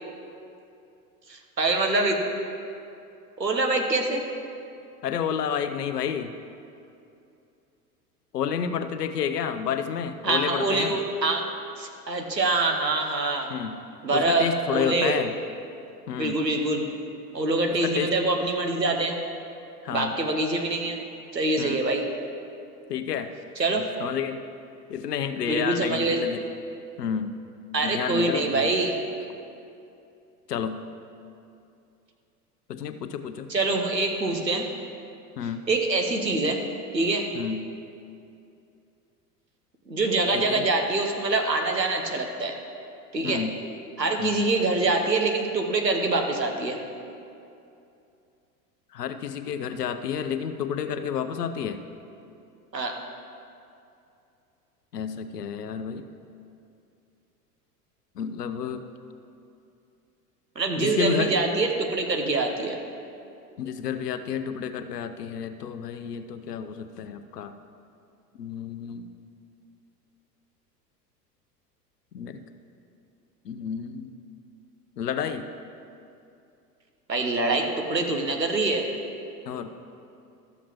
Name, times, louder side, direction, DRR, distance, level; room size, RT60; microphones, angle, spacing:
voice 1, 1.3-2.2 3.4-4.2 10.2-11.5 11.8-13.5 14.0-15.1 16.2-16.9 17.3-19.2 19.9-21.0 21.3-22.0 23.6-23.9 25.5-26.2 27.7-29.0 33.5-34.7 35.7-36.7 36.9-37.3 39.9-42.6 43.1-43.4 44.0-46.8 52.7-53.0 60.6-62.8 77.1-78.9, right 2 dB, 90° right, 3 dB, 1.0 m, -25 dB
voice 2, 5.0-6.3 8.3-11.0 13.5-13.8 14.1-15.4 16.1-16.4 17.8-18.1 19.8-20.1 21.6-21.8 22.9-23.3 24.0-24.4 24.9-26.4 27.0-27.3 27.8-28.7 30.5-30.8 32.7-33.5 35.4-35.6 37.3-37.6 40.3-40.7 43.2-43.6 44.2-44.4 48.9-51.8 54.9-56.1 58.2-58.8 60.8-61.4 63.6-67.5 68.4-69.0 72.1-72.4 73.4-74.1 75.0-75.5 79.5-79.7, left 7 dB, 70° left, 9 dB, 0.7 m, -30 dB
13.0 x 7.2 x 3.0 m, 2.6 s
figure-of-eight pair, 85°, 49 cm